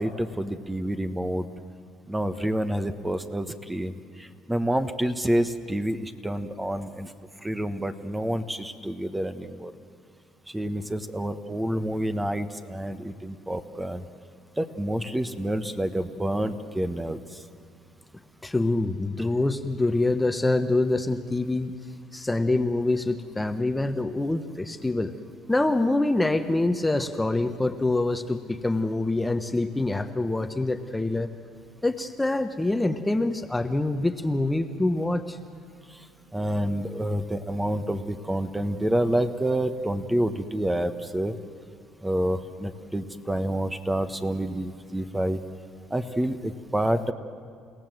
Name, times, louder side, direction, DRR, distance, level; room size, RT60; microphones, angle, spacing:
voice 1, 0.0-1.5 2.1-3.9 4.5-7.1 7.4-9.7 10.5-14.0 14.6-17.2 36.3-41.3 42.0-45.4 45.9-47.1, right 1 dB, 10° right, 9 dB, 1.2 m, -28 dB
voice 2, 18.4-21.7 22.1-25.1 25.5-31.3 31.8-35.4, left 2 dB, 10° left, 8 dB, 1.1 m, -25 dB
30.0 x 17.0 x 7.8 m, 2.3 s
supercardioid pair, 85°, 0 cm